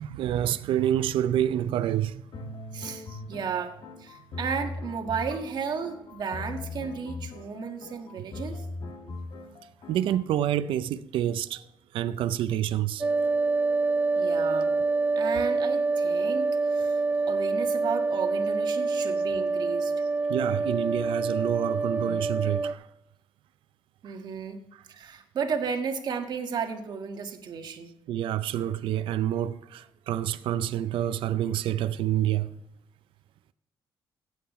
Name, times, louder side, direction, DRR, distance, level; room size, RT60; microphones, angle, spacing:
voice 1, 0.0-2.6 3.1-3.4 8.2-8.3 9.9-11.6 11.9-13.1 20.3-22.9 24.0-24.2 24.7-24.8 28.1-32.5, right 11 dB, 85° right, 0.5 m, -28 dB
sound 1, 2.3-10.2, left 2 dB, 60° left, 1.8 m, -40 dB
voice 2, 2.7-8.6 14.1-14.7 15.1-17.0 17.3-19.9 24.0-24.6 24.9-27.9, right 6 dB, 55° right, 1.6 m, -33 dB
sound 2, 13.0-22.7, right 3 dB, 20° right, 0.4 m, -26 dB
15.5 x 9.2 x 3.1 m
cardioid pair, 115°, 9 cm